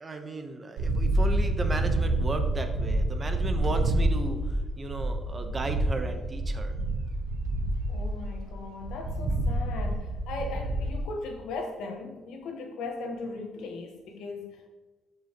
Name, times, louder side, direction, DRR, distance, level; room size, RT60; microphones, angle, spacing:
voice 1, 0.0-6.7, right 2 dB, 30° right, 6 dB, 1.1 m, -35 dB
sound 1, 0.8-11.0, right 1 dB, 85° right, 1.0 m, -28 dB
voice 2, 7.9-14.7, left 3 dB, 85° left, 3 dB, 1.3 m, -38 dB
12.0 x 5.5 x 3.1 m, 1.3 s
cardioid pair, 90°, 0 cm